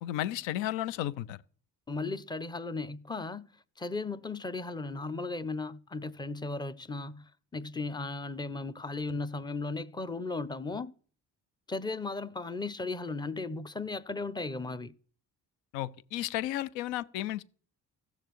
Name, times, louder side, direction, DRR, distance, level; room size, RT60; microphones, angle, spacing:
voice 1, 0.0-1.4 15.7-17.4, left 13 dB, 85° left, 0.5 m, -33 dB
voice 2, 1.9-3.4 3.8-10.9 11.7-14.9, left 3 dB, 10° left, 0.5 m, -36 dB
15.5 x 6.6 x 3.1 m
supercardioid pair, 60°, 44 cm